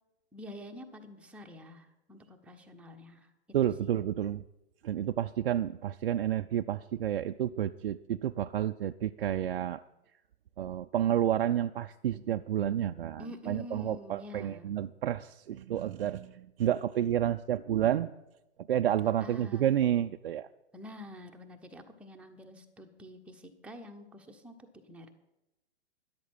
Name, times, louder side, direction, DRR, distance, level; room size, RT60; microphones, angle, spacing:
voice 1, 0.3-3.3 3.8-3.9 13.2-14.7 19.2-19.7 20.7-24.6 24.9-25.1, left 1 dB, 5° right, 3 dB, 0.9 m, -47 dB
voice 2, 3.5-4.4 4.8-9.8 10.6-18.1 18.7-20.5, right 11 dB, 55° right, 7 dB, 0.4 m, -30 dB
12.5 x 11.0 x 4.6 m, 0.92 s
figure-of-eight pair, 110°, 35 cm